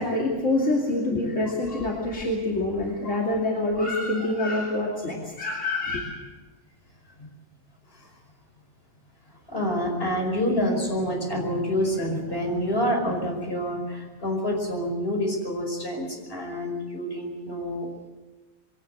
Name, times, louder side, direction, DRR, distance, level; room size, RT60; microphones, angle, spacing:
voice 1, 0.0-6.0, left 2 dB, 70° left, -2 dB, 3.1 m, -26 dB
voice 2, 9.5-17.9, equal, 50° left, 1 dB, 5.6 m, -27 dB
22.5 x 18.0 x 7.9 m, 1.3 s
omnidirectional pair, 1.3 m